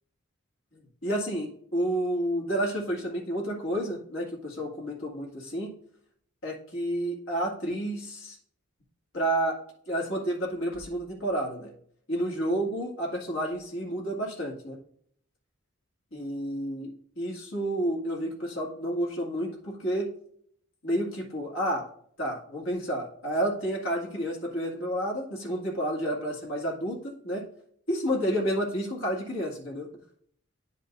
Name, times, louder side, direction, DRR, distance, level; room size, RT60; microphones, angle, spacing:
voice 1, 1.0-5.7 6.4-8.4 9.1-9.6 9.9-11.7 12.1-14.8 16.1-16.9 17.2-20.1 20.8-21.8 22.2-27.4 27.9-29.9, right 1 dB, 70° left, -1 dB, 2.2 m, -30 dB
9.8 x 5.4 x 2.6 m, 0.63 s
head